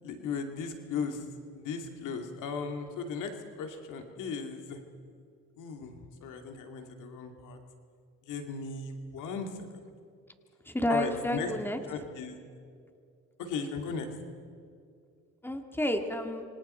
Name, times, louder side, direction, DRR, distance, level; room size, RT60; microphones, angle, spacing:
voice 1, 0.0-1.2 1.5-3.3 3.6-4.8 5.6-5.9 6.2-7.6 8.3-9.5 10.9-11.5 11.9-12.4 13.4-14.1, left 5 dB, 90° left, 4 dB, 2.6 m, -36 dB
voice 2, 10.6-11.8 15.4-16.4, left 1 dB, 5° left, 5 dB, 2.1 m, -30 dB
27.5 x 25.5 x 4.5 m, 2.3 s
cardioid pair, 90°, 30 cm